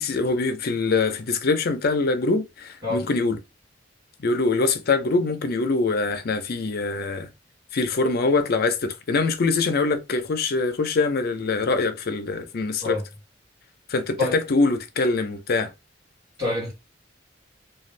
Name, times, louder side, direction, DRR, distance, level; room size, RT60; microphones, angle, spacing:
voice 1, 0.0-3.4 4.2-7.3 7.7-13.0 13.9-15.7, left 3 dB, 55° left, 0.5 m, -23 dB
voice 2, 16.4-16.7, left 3 dB, 55° right, 1.3 m, -26 dB
2.5 x 2.3 x 3.1 m
head